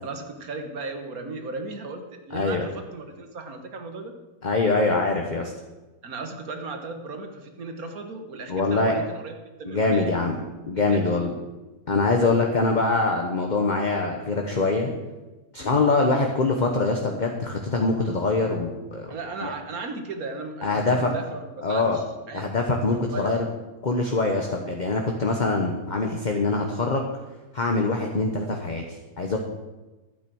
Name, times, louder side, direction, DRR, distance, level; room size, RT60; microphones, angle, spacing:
voice 1, 0.0-4.1 6.0-10.1 10.8-11.3 15.6-15.8 19.1-22.5 22.9-23.4, right 3 dB, 80° right, 5 dB, 1.8 m, -36 dB
voice 2, 2.3-2.7 4.4-5.5 8.5-9.0 9.6-10.4 10.7-11.3 11.9-14.9 15.5-19.1 19.4-19.5 20.6-21.1 21.6-22.0 22.3-23.4 23.8-27.1 27.5-29.4, left 3 dB, 35° left, 2 dB, 1.1 m, -24 dB
12.0 x 8.9 x 6.3 m, 1.1 s
omnidirectional pair, 1.5 m